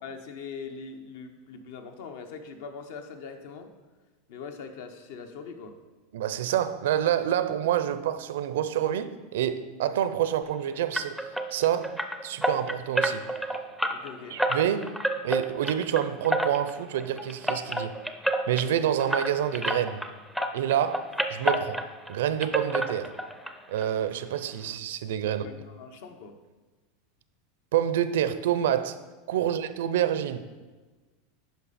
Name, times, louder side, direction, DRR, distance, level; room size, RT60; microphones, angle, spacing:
voice 1, 0.0-3.7 4.3-5.8 13.9-14.4 25.3-26.4 29.4-29.5, left 5 dB, 70° left, 0.9 m, -42 dB
voice 2, 6.1-11.2 11.5-13.2 14.3-14.9 15.2-17.9 18.5-20.0 20.5-21.8 22.1-23.1 23.7-25.4 27.7-29.0 29.3-30.5, right 10 dB, 85° right, 0.5 m, -27 dB
sound 1, 10.9-20.1 20.3-22.1 22.4-23.5 23.8-23.9 24.3-24.4 24.8-24.9, right 1 dB, ahead, 0.5 m, -29 dB
10.0 x 5.4 x 4.2 m
supercardioid pair, 145°, 0 cm